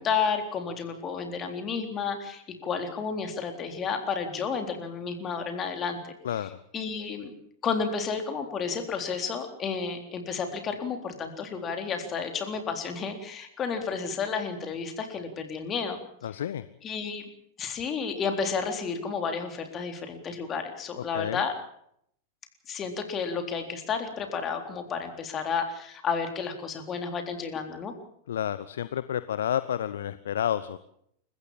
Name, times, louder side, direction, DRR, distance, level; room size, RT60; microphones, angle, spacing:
voice 1, 0.0-6.4 6.7-7.3 7.6-16.0 16.8-17.3 17.6-21.6 22.7-27.9, left 5 dB, 25° left, 6 dB, 3.9 m, -31 dB
voice 2, 6.2-6.6 16.2-16.7 21.1-21.4 28.3-30.8, left 10 dB, 60° left, 14 dB, 0.8 m, -30 dB
29.0 x 15.0 x 7.6 m, 0.71 s
figure-of-eight pair, 90°, 0 cm